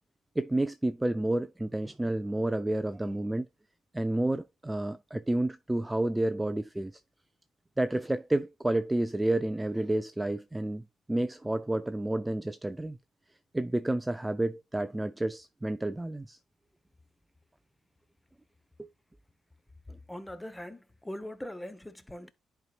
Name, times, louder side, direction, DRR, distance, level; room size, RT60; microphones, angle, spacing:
voice 1, 0.4-3.5 3.9-7.0 7.8-13.0 13.5-16.4 18.8-18.9, right 1 dB, 10° right, 0.4 m, -30 dB
voice 2, 20.1-20.8 21.0-22.3, left 1 dB, 10° left, 0.9 m, -41 dB
10.5 x 4.7 x 2.3 m
cardioid pair, 90°, 0 cm